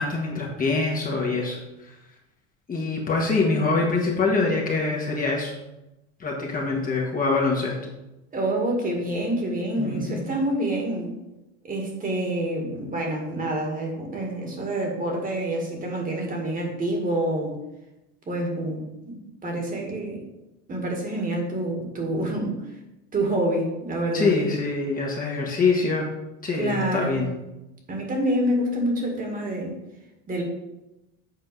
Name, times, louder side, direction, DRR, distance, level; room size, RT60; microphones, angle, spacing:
voice 1, 0.0-1.6 1.8-2.0 2.7-5.5 6.2-7.7 9.7-10.3 24.1-26.1 26.4-27.3, left 3 dB, 25° left, -1 dB, 1.5 m, -24 dB
voice 2, 8.3-11.2 11.6-17.6 18.3-20.2 20.7-22.6 23.1-24.4 26.6-27.2 27.9-29.8 30.3-30.4, right 1 dB, 25° right, 1 dB, 1.9 m, -27 dB
7.9 x 4.3 x 5.3 m, 0.95 s
supercardioid pair, 125°, 34 cm